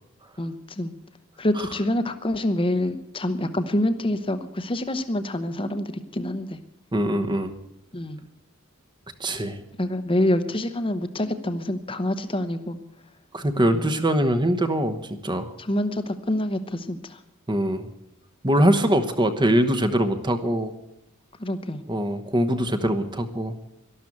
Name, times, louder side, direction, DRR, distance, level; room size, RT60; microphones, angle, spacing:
voice 1, 0.4-0.9 1.4-6.6 7.9-8.3 9.8-12.8 13.7-13.9 15.6-17.2 18.6-18.7 21.4-21.8, left 1 dB, 25° left, 9 dB, 0.9 m, -26 dB
voice 2, 6.9-7.5 9.2-9.6 13.3-15.5 17.5-17.9 18.4-20.7 21.9-23.6, right 1 dB, 20° right, 10 dB, 1.0 m, -23 dB
12.5 x 12.0 x 8.5 m, 0.86 s
head